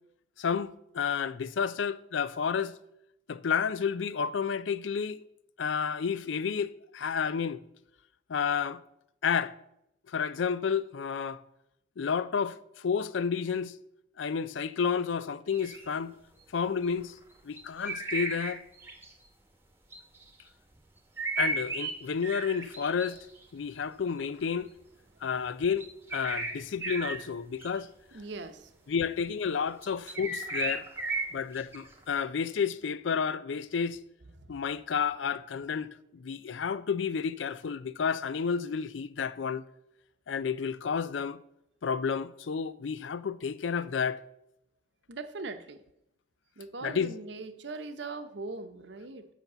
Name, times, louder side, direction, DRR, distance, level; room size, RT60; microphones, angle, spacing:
voice 1, 0.4-2.7 3.3-5.2 5.6-7.6 8.3-8.8 9.2-9.5 10.1-11.4 12.0-13.7 14.2-16.1 16.5-17.1 17.4-18.6 21.4-23.2 23.5-24.7 25.2-27.9 28.9-30.9 31.3-34.0 34.5-39.6 40.3-41.4 41.8-44.2 46.8-47.1, left 6 dB, 85° left, 0.5 m, -31 dB
sound 1, 15.5-15.9 17.0-17.1 17.6-19.1 19.9-20.2 21.2-21.9 22.2-23.4 24.1-24.4 25.8-26.5 26.8-27.2 27.6-27.8 29.8-32.2, right 3 dB, 15° right, 1.1 m, -34 dB
voice 2, 28.1-28.8 31.2-31.4 34.3-34.6 45.1-45.8 46.6-49.3, right 3 dB, 70° right, 0.9 m, -41 dB
8.1 x 5.9 x 6.7 m
head